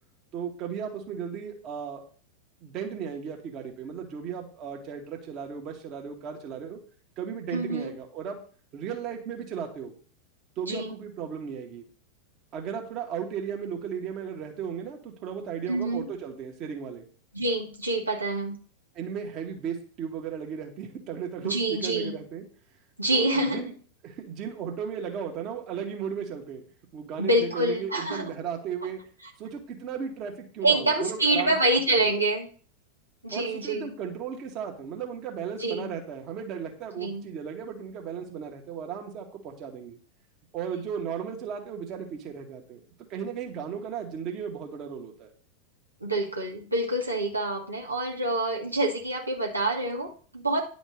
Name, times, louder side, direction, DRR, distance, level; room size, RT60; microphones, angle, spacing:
voice 1, 0.3-2.1 2.6-6.8 7.2-8.4 8.7-9.9 10.6-11.9 12.5-17.1 18.9-22.4 23.1-23.7 24.0-26.6 26.9-29.0 29.4-32.1 33.3-40.0 40.5-42.8 43.1-45.3, right 7 dB, 35° right, 2 dB, 2.0 m, -35 dB
voice 2, 7.5-7.9 10.7-10.9 15.7-16.1 17.3-18.6 21.4-22.2 23.0-23.6 27.2-28.3 30.6-32.5 33.2-33.9 35.6-35.9 37.0-37.3 46.0-50.6, right 2 dB, 85° right, -1 dB, 2.2 m, -26 dB
10.5 x 5.1 x 6.5 m, 0.42 s
figure-of-eight pair, 90°, 0 cm